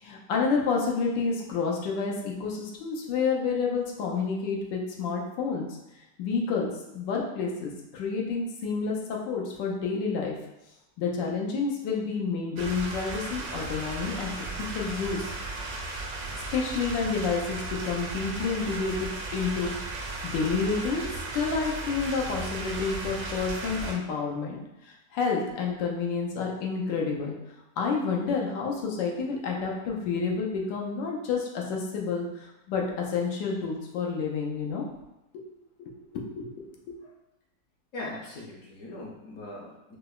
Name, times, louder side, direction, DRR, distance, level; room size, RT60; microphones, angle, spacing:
voice 1, 0.0-5.7 6.2-10.3 11.0-15.3 16.5-21.1 21.3-24.6 24.9-27.3 27.8-34.8 35.8-36.7, left 5 dB, 90° left, -1 dB, 1.3 m, -29 dB
sound 1, 12.6-23.9, right 3 dB, 75° right, 1.1 m, -35 dB
voice 2, 37.9-40.0, left 2 dB, 65° left, -4 dB, 0.8 m, -40 dB
4.7 x 2.0 x 2.3 m, 0.95 s
omnidirectional pair, 1.9 m